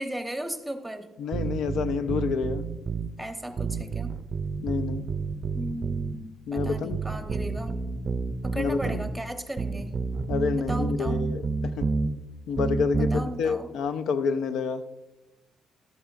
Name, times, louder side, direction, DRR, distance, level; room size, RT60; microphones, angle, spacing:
voice 1, 0.0-1.1 3.2-4.1 5.5-7.7 8.4-9.9 10.7-11.2 13.0-13.7, right 1 dB, 5° right, 6 dB, 1.0 m, -36 dB
voice 2, 1.2-2.6 4.6-5.1 6.5-7.0 8.5-9.0 10.3-11.4 11.8-11.9 12.5-14.8, left 5 dB, 75° left, 12 dB, 0.4 m, -28 dB
sound 1, 1.3-3.1 3.6-6.2 6.6-9.1 9.6-12.1 12.6-13.2, right 4 dB, 40° right, 0.4 m, -29 dB
12.0 x 7.8 x 2.5 m, 1.1 s
cardioid pair, 90°, 0 cm